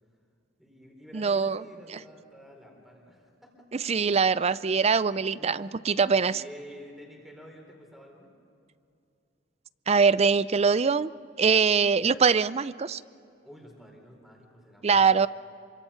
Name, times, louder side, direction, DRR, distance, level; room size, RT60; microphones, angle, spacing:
voice 1, 0.6-3.5 5.3-5.8 6.1-8.3 11.7-11.8 13.4-15.3, equal, ahead, 0 dB, 4.2 m, -49 dB
voice 2, 1.1-1.6 3.8-6.3 9.9-11.1 11.4-13.0 14.8-15.3, right 5 dB, 35° right, 17 dB, 0.5 m, -23 dB
27.0 x 25.0 x 5.8 m, 2.6 s
head